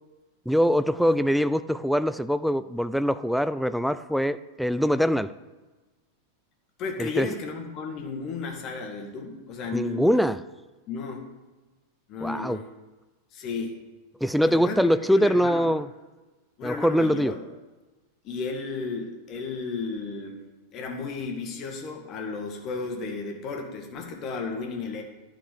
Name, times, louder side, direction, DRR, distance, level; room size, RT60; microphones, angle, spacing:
voice 1, 0.5-5.3 7.0-7.3 9.7-10.4 12.2-12.6 14.2-15.9 16.6-17.3, equal, ahead, 13 dB, 0.4 m, -23 dB
voice 2, 6.8-10.2 10.9-11.3 12.1-12.7 13.3-13.8 14.4-15.7 16.6-17.4 18.2-20.4 20.7-25.0, left 4 dB, 35° left, 3 dB, 1.9 m, -33 dB
11.5 x 5.9 x 6.7 m, 1.2 s
figure-of-eight pair, 90°, 0 cm